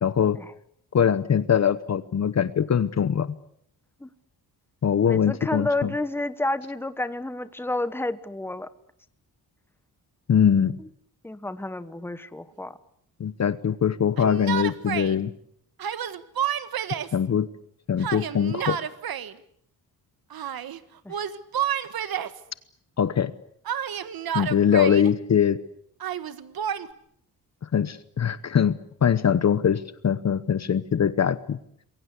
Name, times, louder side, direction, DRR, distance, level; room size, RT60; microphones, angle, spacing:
voice 1, 0.0-0.4 0.9-3.3 4.8-5.9 10.3-10.8 13.2-15.3 17.1-17.5 17.9-18.8 23.0-23.3 24.3-25.6 27.7-31.6, left 8 dB, 45° left, 14 dB, 1.0 m, -22 dB
voice 2, 5.1-8.7 11.2-12.8 21.0-21.2, left 2 dB, 5° left, 12 dB, 1.3 m, -30 dB
Yell, 14.2-15.1 15.8-17.2 18.0-19.3 20.3-20.8 21.1-22.4 23.7-25.1 26.0-26.9, right 9 dB, 65° right, 1.6 m, -30 dB
27.5 x 22.5 x 8.3 m, 0.69 s
wide cardioid pair, 130°, 38 cm